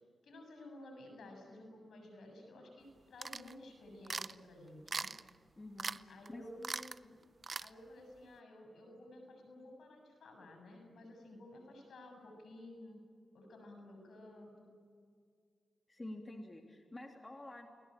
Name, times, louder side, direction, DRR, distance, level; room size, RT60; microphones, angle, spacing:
voice 1, 0.2-5.1 6.1-7.2 7.6-13.0 13.3-14.8, left 1 dB, 75° left, 4 dB, 7.4 m, -53 dB
sound 1, 3.2-3.5 4.1-4.3 4.9-5.3 5.8-6.0 6.3-6.4 6.6-7.0 7.4-7.7, right 4 dB, 45° right, 0.6 m, -40 dB
voice 2, 5.6-6.4 15.9-17.7, left 1 dB, 25° left, 3 dB, 3.1 m, -49 dB
29.5 x 20.0 x 9.0 m, 2.1 s
supercardioid pair, 45°, 0 cm